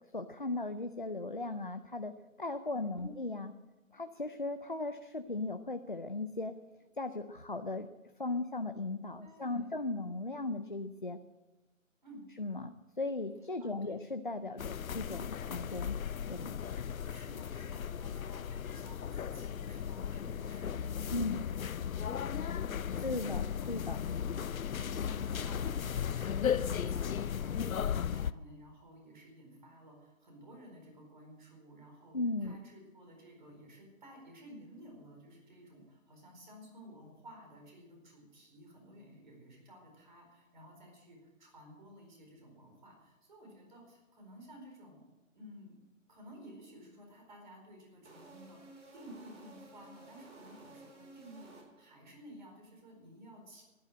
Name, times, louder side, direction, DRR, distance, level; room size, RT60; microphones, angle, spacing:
voice 1, 0.1-3.5 3.9-6.5 7.0-7.9 8.2-11.2 12.4-16.0 16.3-16.6 21.1-21.4 23.0-24.0 32.1-32.6, left 2 dB, 40° left, 8 dB, 0.5 m, -37 dB
voice 2, 9.2-9.8 12.0-12.2 13.6-14.0 16.8-45.0 45.3-53.6, equal, 35° right, 2 dB, 4.5 m, -55 dB
sound 1, 14.6-28.3, left 8 dB, 90° left, 0.6 m, -36 dB
sound 2, 48.0-52.1, right 2 dB, 60° right, 4.3 m, -54 dB
14.0 x 10.5 x 7.7 m, 1.1 s
hypercardioid pair, 175°, 40 cm